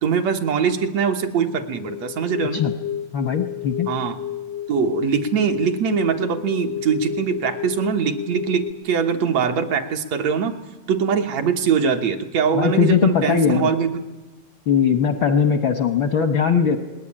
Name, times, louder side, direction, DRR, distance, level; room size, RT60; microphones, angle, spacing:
voice 1, 0.0-2.6 3.9-4.2 4.7-10.6 10.9-14.0, right 6 dB, 65° right, 5 dB, 2.2 m, -22 dB
sound 1, 1.7-8.7, left 10 dB, 90° left, 1.0 m, -31 dB
voice 2, 3.1-3.9 12.5-13.7 14.7-16.8, left 7 dB, 70° left, 8 dB, 1.2 m, -19 dB
19.5 x 18.0 x 9.8 m, 1.2 s
omnidirectional pair, 3.6 m